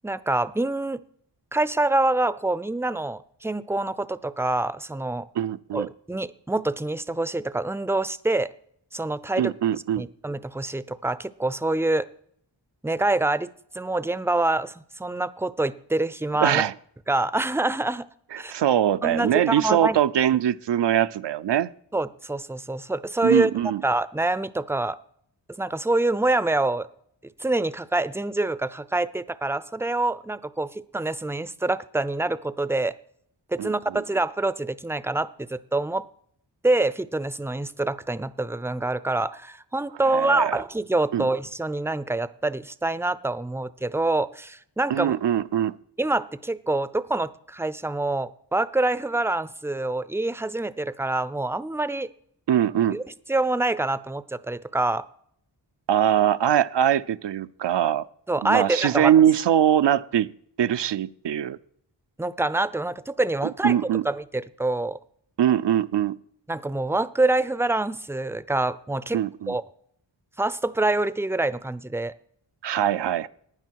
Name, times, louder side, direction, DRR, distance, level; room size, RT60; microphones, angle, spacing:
voice 1, 0.0-1.0 1.5-5.3 5.7-8.5 8.9-12.1 12.8-13.5 13.7-16.6 17.1-18.0 18.4-18.5 19.0-20.0 21.9-23.5 23.8-25.0 25.6-26.9 27.4-32.9 33.5-36.1 36.6-45.1 46.0-52.1 52.9-53.0 53.3-55.0 58.3-59.1 62.2-63.8 64.0-65.0 66.5-69.6 70.4-72.1, right 2 dB, 5° right, 16 dB, 0.5 m, -26 dB
voice 2, 5.4-5.9 9.4-10.0 16.4-16.7 18.5-21.7 23.2-23.8 33.6-34.0 40.1-40.6 41.1-41.3 44.9-45.7 52.5-53.0 55.9-58.0 58.4-60.3 60.6-61.6 63.6-64.0 65.4-66.2 69.1-69.5 72.6-73.3, right 10 dB, 70° right, 14 dB, 0.6 m, -22 dB
15.5 x 9.8 x 4.6 m, 0.67 s
cardioid pair, 60°, 44 cm